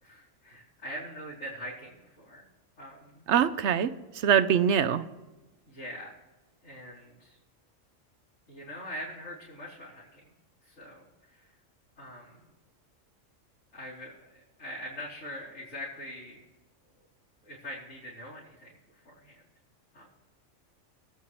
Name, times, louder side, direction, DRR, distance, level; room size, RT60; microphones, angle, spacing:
voice 1, 0.0-2.5 2.8-3.2 5.7-6.1 6.6-7.4 8.5-10.3 10.6-11.5 12.0-12.5 13.7-16.4 17.4-19.4 19.9-20.1, equal, 80° left, -10 dB, 3.8 m, -43 dB
voice 2, 3.3-5.1, right 8 dB, 65° right, 12 dB, 0.9 m, -24 dB
24.0 x 8.6 x 3.1 m, 1.1 s
omnidirectional pair, 1.3 m